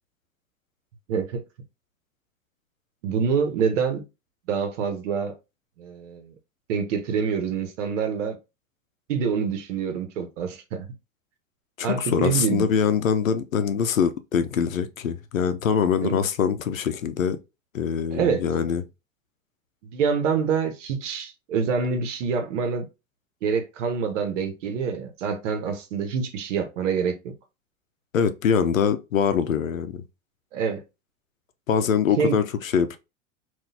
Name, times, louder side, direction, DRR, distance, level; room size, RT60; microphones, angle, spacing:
voice 1, 1.1-1.4 3.0-4.0 4.5-5.4 5.8-6.3 6.7-8.4 9.1-10.9 11.8-12.7 16.0-16.3 18.1-18.4 19.8-22.9 23.4-27.2 30.5-30.8 32.2-32.4, right 6 dB, 65° right, 1.1 m, -26 dB
voice 2, 11.8-17.4 17.7-18.8 28.1-30.0 31.7-33.0, left 7 dB, 85° left, 0.6 m, -23 dB
3.8 x 2.6 x 2.7 m
hypercardioid pair, 85°, 39 cm